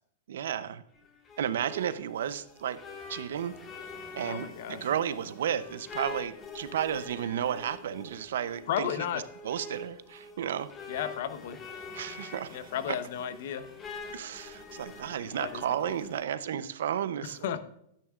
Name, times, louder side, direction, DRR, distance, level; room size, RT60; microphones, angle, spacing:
voice 1, 0.3-0.8 1.4-2.8 3.1-3.5 4.1-8.9 9.4-10.7 11.9-12.6 14.1-17.4, right 9 dB, 75° right, 14 dB, 0.7 m, -33 dB
sound 1, 0.9-16.2, left 4 dB, 25° left, 1.7 m, -45 dB
voice 2, 4.2-4.9 8.7-9.2 10.9-11.6 12.5-13.7 15.4-16.0 17.2-17.6, left 9 dB, 65° left, 12 dB, 0.9 m, -34 dB
12.0 x 9.8 x 2.5 m, 0.75 s
hypercardioid pair, 140°, 0 cm